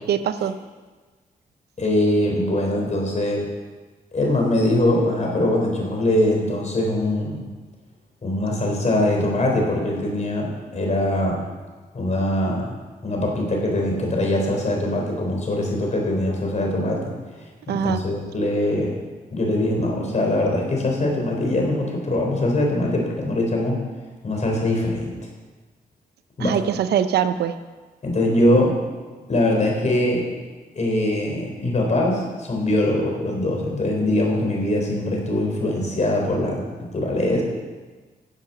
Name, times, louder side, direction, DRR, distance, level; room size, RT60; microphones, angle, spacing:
voice 1, 0.1-0.5 17.7-18.0 26.4-27.5, right 9 dB, 85° right, 11 dB, 0.6 m, -22 dB
voice 2, 1.8-3.5 4.1-7.5 8.2-11.4 11.9-12.7 13.0-17.1 17.7-19.0 19.3-23.8 24.2-25.1 26.4-26.6 28.0-28.7 29.3-30.3 30.7-37.4, left 1 dB, 45° left, 0 dB, 3.9 m, -22 dB
10.5 x 7.7 x 7.1 m, 1.3 s
cardioid pair, 75°, 16 cm